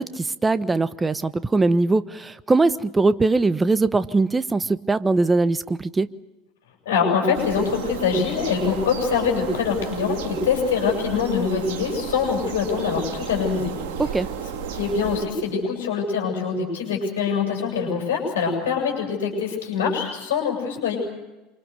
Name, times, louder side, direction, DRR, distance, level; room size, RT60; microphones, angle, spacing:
voice 1, 0.0-6.1 14.0-14.3, right 3 dB, 15° right, 14 dB, 1.2 m, -21 dB
voice 2, 6.8-13.7 14.7-21.0, left 6 dB, 75° left, -1 dB, 7.7 m, -24 dB
sound 1, 7.3-15.3, right 7 dB, 65° right, 3.3 m, -33 dB
27.5 x 25.0 x 6.7 m, 1.1 s
hypercardioid pair, 75°, 0 cm